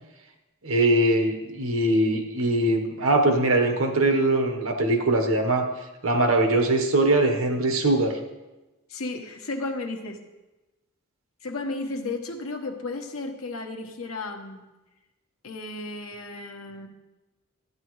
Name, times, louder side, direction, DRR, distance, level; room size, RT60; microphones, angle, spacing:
voice 1, 0.6-5.7 6.0-8.2, right 2 dB, 65° right, 4 dB, 1.2 m, -22 dB
voice 2, 8.9-10.2 11.4-14.6 15.4-16.9, left 3 dB, 70° left, 4 dB, 1.1 m, -33 dB
12.5 x 9.7 x 3.2 m, 1.1 s
head